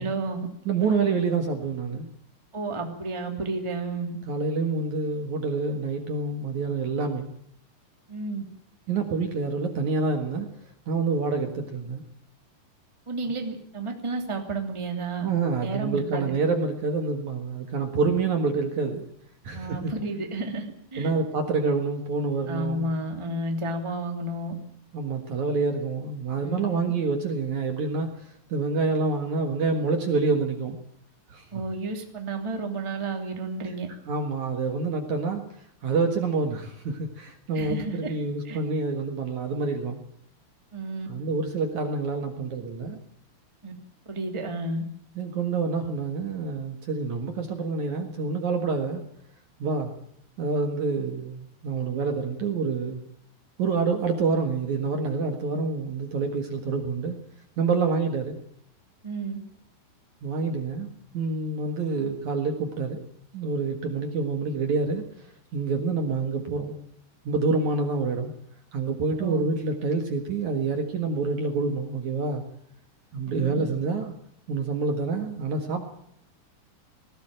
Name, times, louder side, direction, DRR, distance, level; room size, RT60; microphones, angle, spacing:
voice 1, 0.0-0.5 0.8-1.0 2.5-4.2 8.1-8.4 13.1-15.3 15.6-16.3 19.5-20.6 20.9-21.1 22.5-24.6 26.4-26.9 31.5-33.9 37.5-38.1 38.4-38.6 40.7-41.1 43.6-43.7 44.1-44.8 59.0-59.4 69.2-69.4 73.3-73.6, right 2 dB, 10° right, 3 dB, 2.2 m, -31 dB
voice 2, 0.7-2.1 4.3-7.3 8.9-10.5 10.9-12.0 15.2-19.1 19.4-19.9 21.0-22.9 24.9-30.8 31.3-31.6 33.9-35.4 35.8-40.0 41.1-43.0 45.2-49.0 49.6-49.9 50.4-53.0 53.6-57.2 57.6-58.4 60.2-60.9 61.1-63.0 63.3-66.7 67.2-68.3 68.7-72.4 73.1-74.1 74.5-75.8, right 4 dB, 55° right, 5 dB, 2.6 m, -27 dB
19.5 x 17.0 x 8.9 m, 0.73 s
omnidirectional pair, 4.7 m